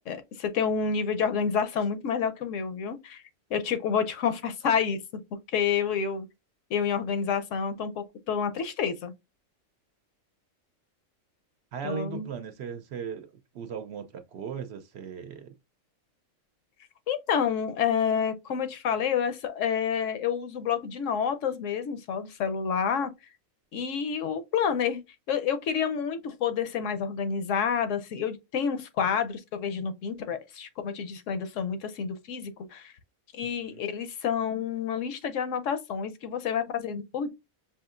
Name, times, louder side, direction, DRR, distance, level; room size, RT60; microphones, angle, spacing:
voice 1, 0.0-3.2 3.5-5.2 5.5-6.3 6.7-9.1 11.8-12.3 17.1-23.1 23.7-25.0 25.3-32.9 33.4-37.3, left 7 dB, 75° left, 1.0 m, -29 dB
voice 2, 11.7-15.5 33.7-33.8, right 7 dB, 65° right, 0.7 m, -38 dB
5.5 x 2.7 x 2.4 m
omnidirectional pair, 1.4 m